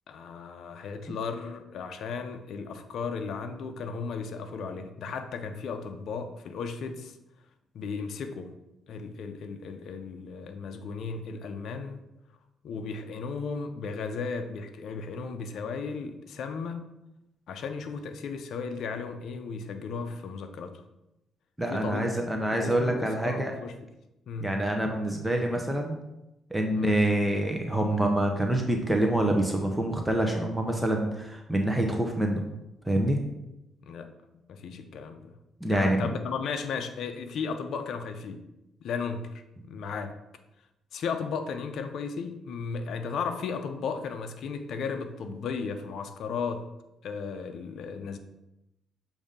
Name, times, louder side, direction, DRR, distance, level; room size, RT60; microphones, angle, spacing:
voice 1, 0.1-7.2 7.7-8.5 8.9-12.0 12.6-16.9 17.5-20.8 21.7-22.2 22.5-23.7 24.3-24.5 26.7-27.0 33.8-34.1 34.5-35.3 35.7-38.4 38.8-39.3 39.6-40.1 40.9-46.6 47.0-48.2, left 5 dB, 70° left, 6 dB, 0.5 m, -35 dB
voice 2, 21.6-23.5 24.4-26.0 26.5-32.4 32.9-33.2 35.6-36.1, right 1 dB, 5° right, 2 dB, 0.7 m, -26 dB
6.9 x 2.7 x 5.1 m, 0.91 s
cardioid pair, 90°, 0 cm